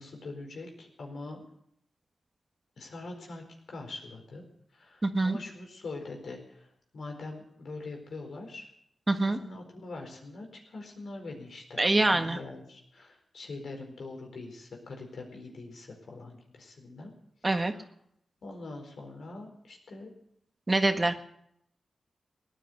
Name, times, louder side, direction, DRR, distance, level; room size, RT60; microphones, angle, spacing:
voice 1, 0.0-1.4 2.8-3.4 3.7-4.4 4.7-8.7 9.2-11.8 12.1-17.1 17.6-17.8 18.4-20.1, left 3 dB, 75° left, 2 dB, 4.5 m, -43 dB
voice 2, 5.0-5.4 9.1-9.4 11.8-12.4 17.4-17.7 20.7-21.2, right 2 dB, 30° right, 7 dB, 1.6 m, -25 dB
17.5 x 10.0 x 8.0 m, 0.72 s
cardioid pair, 55°, 0 cm